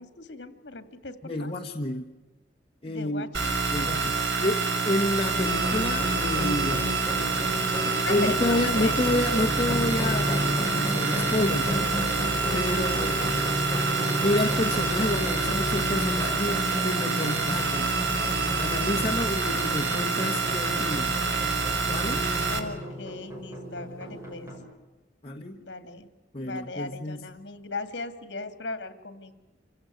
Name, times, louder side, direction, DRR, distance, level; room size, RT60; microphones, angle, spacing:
voice 1, 0.0-1.5 2.8-3.6 4.0-4.2 7.8-9.1 12.4-13.1 22.5-24.5 25.6-26.1 26.4-29.3, left 3 dB, 70° left, 9 dB, 2.2 m, -38 dB
voice 2, 1.2-2.1 2.8-3.3 3.7-6.8 8.1-11.9 12.5-13.2 14.2-18.0 18.6-21.2 21.9-22.2 25.2-25.6 26.3-27.3, left 1 dB, 30° left, -1 dB, 1.4 m, -29 dB
sound 1, 3.3-22.6, right 4 dB, 70° right, 2.9 m, -27 dB
sound 2, 5.4-24.6, left 1 dB, 15° right, 6.2 m, -33 dB
27.0 x 16.0 x 9.7 m, 1.1 s
head